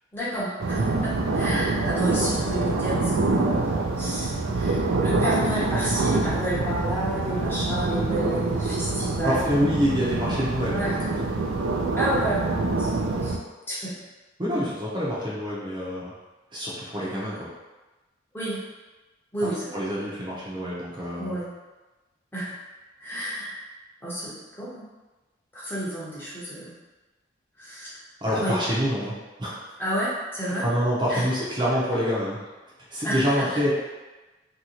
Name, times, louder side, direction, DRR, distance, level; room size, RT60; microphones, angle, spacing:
voice 1, 0.1-9.5 10.7-11.0 11.9-12.4 12.7-13.4 13.7-13.9 18.3-18.6 19.3-19.7 21.2-21.5 22.3-22.6 23.0-23.5 24.0-24.9 25.5-26.7 27.6-28.0 28.4-28.5 29.8-30.7 31.1-31.2 33.0-33.5, right 1 dB, 10° left, -8 dB, 0.7 m, -30 dB
sound 1, 0.6-13.4, right 3 dB, 75° right, 0.4 m, -25 dB
voice 2, 9.2-11.0 14.4-16.1 16.5-17.5 19.7-21.4 28.2-29.6 30.4-32.4 32.9-33.7, equal, 25° right, -7 dB, 0.6 m, -26 dB
2.9 x 2.7 x 2.9 m, 1.2 s
head